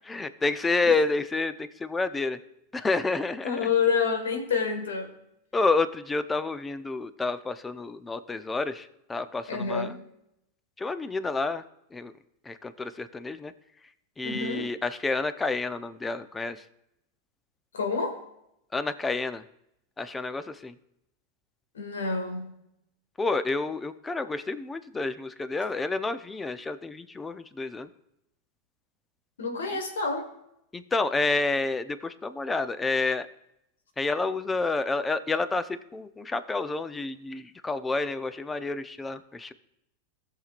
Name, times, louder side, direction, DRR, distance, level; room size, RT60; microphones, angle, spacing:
voice 1, 0.1-2.4 2.7-3.7 5.5-9.9 10.8-11.6 11.9-12.1 12.5-13.5 14.2-16.6 18.7-19.4 20.0-20.7 23.2-27.9 29.7-29.8 30.7-33.3 34.0-39.5, left 3 dB, 15° left, 12 dB, 0.7 m, -29 dB
voice 2, 3.4-5.1 9.5-10.0 14.2-14.7 17.7-18.2 21.7-22.5 29.4-30.3, left 5 dB, 85° left, 5 dB, 1.7 m, -28 dB
18.0 x 6.7 x 2.5 m, 0.82 s
hypercardioid pair, 100°, 0 cm